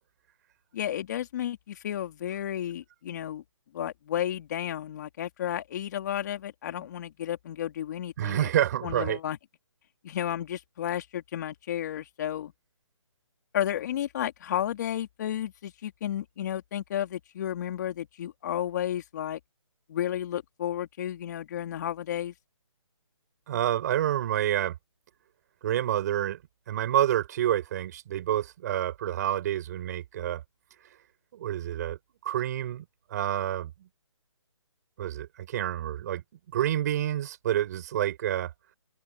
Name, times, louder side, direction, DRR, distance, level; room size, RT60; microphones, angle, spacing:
voice 1, 0.7-3.4 3.7-8.5 8.8-9.4 10.0-12.5 13.5-19.4 19.9-22.3, left 11 dB, 35° left, 2.7 m, -32 dB
voice 2, 8.2-9.2 23.5-24.8 25.6-26.4 26.7-30.4 31.3-32.8 33.1-33.9 35.0-36.2 36.5-38.5, right 12 dB, 35° right, 4.9 m, -28 dB
hypercardioid pair, 160°, 17 cm